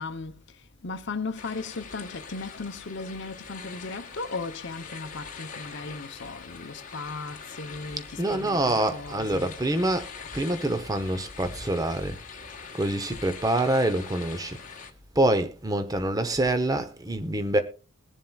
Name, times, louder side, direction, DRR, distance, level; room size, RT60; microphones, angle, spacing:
voice 1, 0.0-9.6, left 3 dB, 55° left, 0.7 m, -37 dB
sound 1, 1.4-14.9, left 5 dB, 40° left, 1.3 m, -43 dB
voice 2, 8.2-10.1 10.3-12.2 12.7-14.6 15.2-17.6, right 1 dB, 15° right, 0.7 m, -26 dB
22.0 x 7.4 x 2.3 m
head